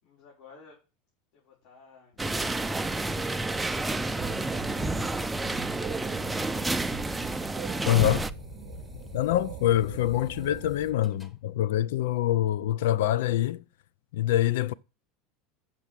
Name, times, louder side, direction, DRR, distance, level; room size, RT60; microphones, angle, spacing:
voice 1, 0.0-0.8 1.3-2.3, left 5 dB, 60° left, 5.4 m, -56 dB
sound 1, 2.2-8.3, right 2 dB, 5° right, 0.5 m, -30 dB
sound 2, 4.1-10.7, right 14 dB, 60° right, 0.5 m, -44 dB
sound 3, 6.3-6.4 7.0-11.3, left 3 dB, 15° left, 1.5 m, -41 dB
voice 2, 7.9-8.2 9.1-13.6 14.1-14.7, left 13 dB, 85° left, 0.5 m, -25 dB
7.5 x 7.0 x 7.5 m
supercardioid pair, 140°, 0 cm